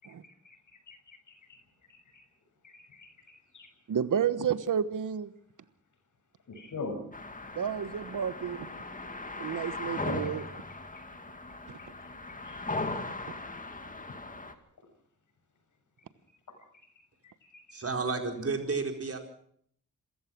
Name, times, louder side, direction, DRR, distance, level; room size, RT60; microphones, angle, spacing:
voice 1, 0.0-1.6 1.9-2.2 2.6-3.7 6.5-6.9 9.1-9.4 10.1-10.2 12.4-12.6 17.5-17.8, left 4 dB, 75° left, 5 dB, 6.7 m, -45 dB
voice 2, 3.9-5.3 7.5-8.7 9.4-10.5, right 8 dB, 85° right, 14 dB, 1.3 m, -31 dB
sound 1, 7.1-14.5, left 2 dB, 25° left, 2.3 m, -38 dB
voice 3, 17.7-19.2, right 4 dB, 50° right, 4 dB, 4.4 m, -31 dB
27.5 x 15.5 x 6.2 m, 0.63 s
wide cardioid pair, 100°, 30 cm